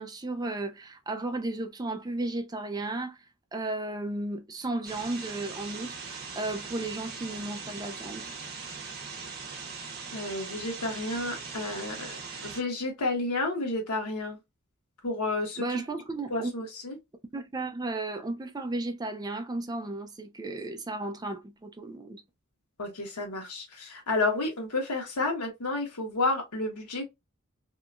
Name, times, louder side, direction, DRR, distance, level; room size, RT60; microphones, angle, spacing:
voice 1, 0.0-3.2 3.5-8.3 15.6-16.5 17.3-22.2, right 2 dB, 15° right, 0.4 m, -34 dB
sound 1, 4.8-12.6, right 5 dB, 45° right, 0.7 m, -40 dB
voice 2, 10.1-14.4 15.0-15.8 16.3-17.0 22.8-27.0, left 2 dB, 75° left, 1.1 m, -31 dB
2.8 x 2.3 x 2.4 m
head